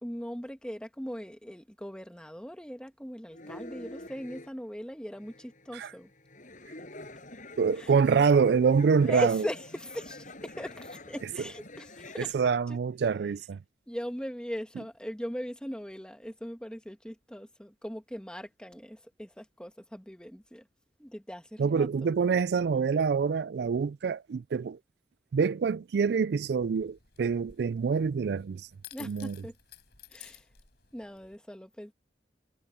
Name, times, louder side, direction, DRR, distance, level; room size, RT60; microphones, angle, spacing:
voice 1, 0.0-6.1 7.8-7.9 9.1-12.3 12.7-12.8 13.9-20.6 21.0-22.1 28.9-29.5 30.1-30.4 30.9-31.9, equal, 5° left, 1.7 m, -39 dB
sound 1, 3.3-4.5 5.1-12.3, left 2 dB, 45° left, 7.3 m, -47 dB
voice 2, 7.6-9.4 12.2-13.6 21.6-24.8 25.3-28.7 29.0-29.4, right 5 dB, 60° right, 0.3 m, -26 dB
sound 2, 26.4-31.4, left 11 dB, 60° left, 7.3 m, -54 dB
head